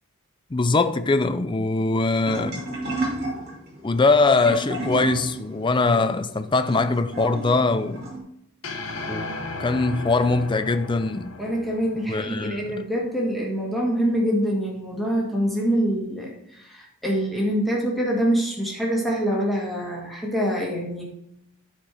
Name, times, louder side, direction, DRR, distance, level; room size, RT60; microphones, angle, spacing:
voice 1, 0.5-2.7 3.8-8.1 9.1-11.4 12.1-12.8, left 3 dB, 20° left, 0.4 m, -22 dB
sound 1, 2.2-8.2, right 1 dB, 50° right, 2.7 m, -32 dB
sound 2, 8.6-13.0, left 2 dB, 75° left, 1.3 m, -36 dB
voice 2, 11.4-21.0, equal, ahead, 1.8 m, -25 dB
12.0 x 4.5 x 4.9 m
head